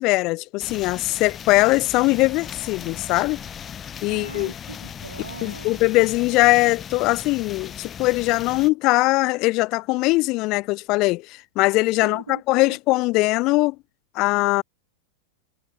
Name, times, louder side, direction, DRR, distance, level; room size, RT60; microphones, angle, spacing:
voice 1, 0.0-3.4 4.0-4.5 5.4-13.8 14.2-14.6, left 22 dB, 40° left, 0.4 m, -21 dB
sound 1, 0.6-8.7, left 8 dB, 25° left, 1.7 m, -38 dB
voice 2, 4.1-5.8 12.0-12.8, right 4 dB, 75° right, 4.4 m, -40 dB
figure-of-eight pair, 90°, 0 cm